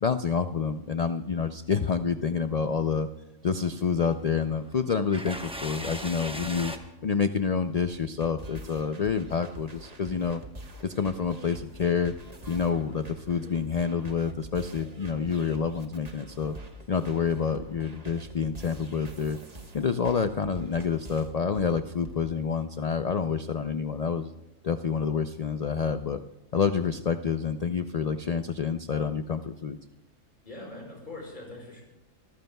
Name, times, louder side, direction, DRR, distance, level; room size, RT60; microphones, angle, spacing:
voice 1, 0.0-3.1 3.4-6.7 7.0-10.4 10.8-12.1 12.5-16.6 16.9-19.4 19.7-24.3 24.6-26.2 26.5-29.8, left 6 dB, 85° left, 9 dB, 0.3 m, -28 dB
sound 1, 3.7-6.8, equal, 5° right, 0.9 m, -39 dB
sound 2, 7.8-22.2, right 1 dB, 30° right, 1.3 m, -45 dB
voice 2, 30.4-31.8, left 2 dB, 35° left, -2 dB, 5.6 m, -42 dB
25.0 x 14.5 x 2.3 m, 1.0 s
omnidirectional pair, 1.4 m